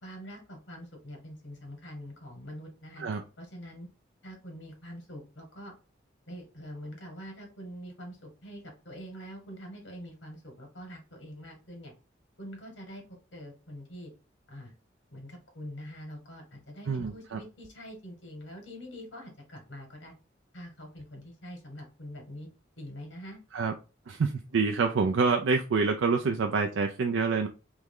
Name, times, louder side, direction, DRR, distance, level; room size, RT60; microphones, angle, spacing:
voice 1, 0.0-3.0 3.4-3.9 4.2-5.7 6.3-11.9 12.4-13.0 13.3-14.1 14.5-14.7 15.1-20.1 20.5-22.5 22.8-23.4, equal, 75° left, 2 dB, 1.9 m, -44 dB
voice 2, 16.9-17.4 23.5-23.7 24.1-27.5, right 4 dB, 90° right, 4 dB, 0.4 m, -27 dB
3.5 x 3.1 x 3.6 m, 0.32 s
head